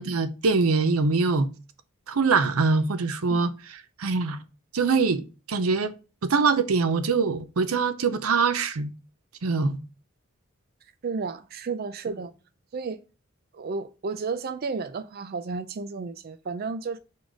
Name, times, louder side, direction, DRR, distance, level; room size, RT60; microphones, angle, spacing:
voice 1, 0.0-1.5 2.1-3.5 4.0-4.4 4.7-5.9 6.2-8.9 9.4-9.8, right 4 dB, 90° right, 0.6 m, -23 dB
voice 2, 11.0-12.3 12.7-13.0 13.5-17.0, right 4 dB, 45° right, 0.4 m, -32 dB
4.8 x 4.1 x 4.8 m
head